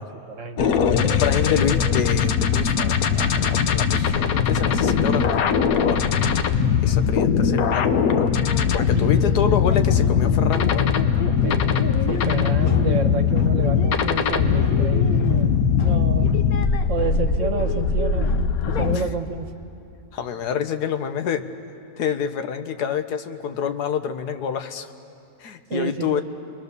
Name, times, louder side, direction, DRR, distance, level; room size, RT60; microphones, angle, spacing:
voice 1, 0.0-1.2 1.7-1.8 8.9-9.5 11.4-11.6 12.1-15.5 15.8-16.3 16.9-18.3 18.6-19.5 25.7-26.2, right 6 dB, 55° right, 7 dB, 1.3 m, -30 dB
sound 1, 0.6-19.0, left 7 dB, 65° left, 1.3 m, -20 dB
voice 2, 0.9-6.1 6.8-8.3 8.7-10.9 18.9-19.0 20.1-21.4 22.0-24.9 25.4-26.2, left 8 dB, 90° left, 8 dB, 1.5 m, -27 dB
29.5 x 21.5 x 6.7 m, 2.6 s
omnidirectional pair, 1.7 m